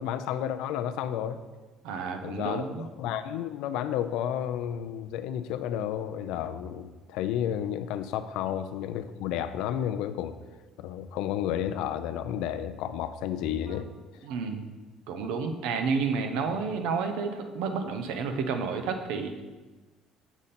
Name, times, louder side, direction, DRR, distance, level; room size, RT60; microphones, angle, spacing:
voice 1, 0.0-1.4 2.2-10.3 10.8-13.9, left 10 dB, 70° left, 10 dB, 0.4 m, -31 dB
voice 2, 1.8-2.9 13.7-13.8 14.2-14.7 15.1-19.4, right 5 dB, 75° right, 7 dB, 0.7 m, -30 dB
7.2 x 5.2 x 4.2 m, 1.2 s
cardioid pair, 170°, 0 cm